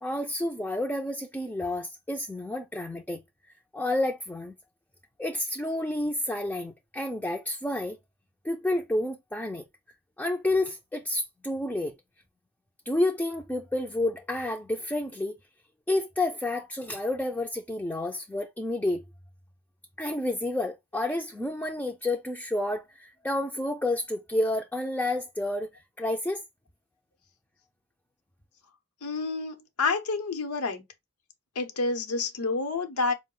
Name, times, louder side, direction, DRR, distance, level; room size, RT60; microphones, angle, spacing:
voice 1, 0.0-3.2 3.7-4.5 5.2-8.0 8.4-9.6 10.2-11.9 12.9-15.3 15.9-19.0 20.0-25.7 26.0-26.4, left 1 dB, 5° left, 0.3 m, -30 dB
voice 2, 29.0-30.8 31.6-33.1, left 3 dB, 90° left, 0.8 m, -29 dB
4.7 x 2.1 x 3.7 m
head